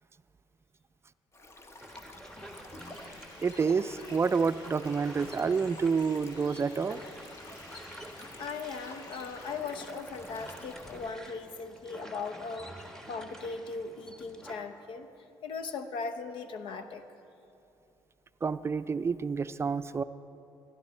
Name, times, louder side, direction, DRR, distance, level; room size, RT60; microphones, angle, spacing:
Stream, 1.3-11.1, left 2 dB, 30° left, 1.2 m, -51 dB
sound 1, 1.8-14.5, equal, 5° left, 1.4 m, -48 dB
sound 2, 2.8-9.6, left 2 dB, 55° left, 2.8 m, -53 dB
voice 1, 3.4-7.0 18.4-20.0, right 5 dB, 30° right, 13 dB, 0.4 m, -28 dB
voice 2, 8.4-15.1 15.4-17.0, left 4 dB, 75° left, 9 dB, 0.8 m, -38 dB
17.0 x 11.0 x 4.3 m, 2.8 s
supercardioid pair, 75°, 9 cm